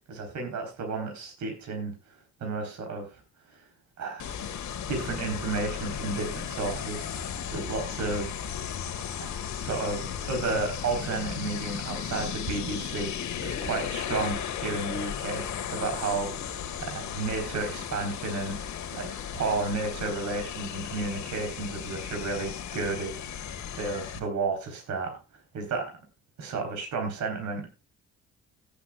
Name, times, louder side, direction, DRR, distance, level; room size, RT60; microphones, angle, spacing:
voice 1, 0.1-1.9 2.4-3.1 4.0-4.3 4.9-8.3 9.2-15.5 15.7-16.3 16.8-23.4 23.7-25.1 25.5-25.9 26.4-27.7, right 3 dB, 70° right, 4 dB, 3.7 m, -32 dB
sound 1, 4.2-24.2, left 8 dB, 70° left, 1.8 m, -35 dB
17.0 x 8.5 x 2.3 m, 0.29 s
cardioid pair, 90°, 30 cm